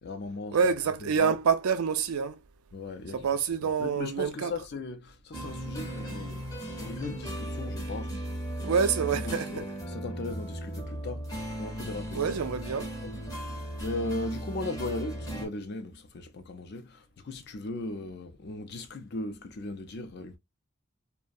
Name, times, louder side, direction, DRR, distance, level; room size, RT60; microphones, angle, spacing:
voice 1, 0.0-0.6 1.0-1.3 2.7-3.3 3.6-6.5 6.8-8.2 8.6-11.3 11.6-12.3 13.0-13.2 13.8-20.4, left 2 dB, 50° left, 0.4 m, -38 dB
voice 2, 0.5-2.4 3.2-4.5 8.6-9.6 12.1-12.9, right 6 dB, 80° right, 0.4 m, -27 dB
sound 1, 5.3-15.5, right 1 dB, 15° left, 0.7 m, -37 dB
2.4 x 2.1 x 2.5 m
head